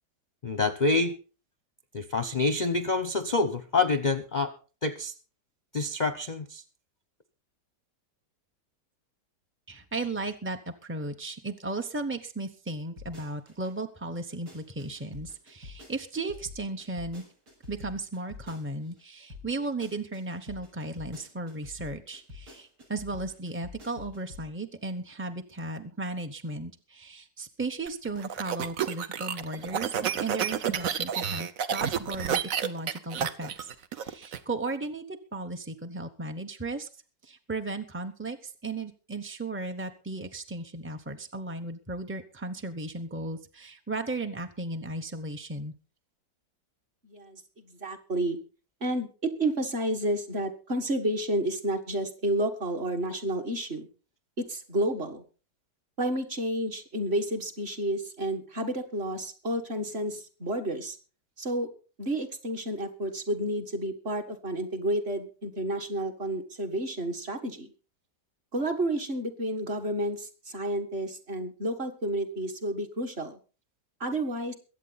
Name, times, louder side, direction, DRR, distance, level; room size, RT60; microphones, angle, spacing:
voice 1, 0.4-1.1 1.9-4.5 4.8-5.1 5.7-6.6, left 3 dB, 40° left, 11 dB, 0.7 m, -27 dB
voice 2, 9.7-17.2 17.7-36.9 37.2-45.7, right 2 dB, 15° right, 5 dB, 0.5 m, -35 dB
sound 1, 13.0-13.7 14.1-19.0 19.3-24.5 24.8-24.9, left 3 dB, 80° right, 6.7 m, -47 dB
sound 2, 27.9-34.4, right 8 dB, 60° right, 1.2 m, -30 dB
voice 3, 47.0-47.4 47.7-48.4 48.8-53.9 54.4-55.2 56.0-61.0 61.4-61.7 62.0-67.7 68.5-73.4 74.0-74.5, right 1 dB, 40° right, 5 dB, 1.8 m, -30 dB
22.5 x 8.3 x 4.0 m, 0.36 s
omnidirectional pair, 1.8 m